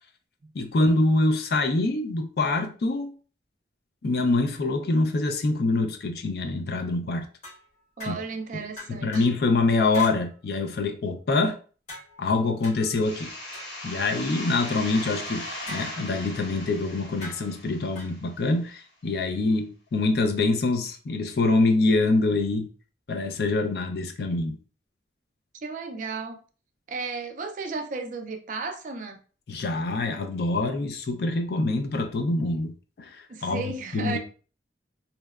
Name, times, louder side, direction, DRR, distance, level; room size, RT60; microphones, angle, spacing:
voice 1, 0.5-3.1 4.0-7.3 8.1-8.2 8.5-8.6 9.0-11.6 12.2-13.3 13.8-22.7 23.1-24.6 29.5-34.2, left 2 dB, 60° left, 0.4 m, -25 dB
sound 1, 7.4-8.4 8.8-9.4 9.9-10.2 11.9-14.3 15.7-16.3 17.2-18.1, left 1 dB, 40° left, 1.1 m, -44 dB
voice 2, 8.0-9.3 25.6-26.4 26.9-29.2 33.3-34.2, right 4 dB, 45° right, 0.3 m, -34 dB
sound 2, 13.0-18.5, left 1 dB, 85° left, 0.9 m, -38 dB
2.8 x 2.1 x 2.3 m
head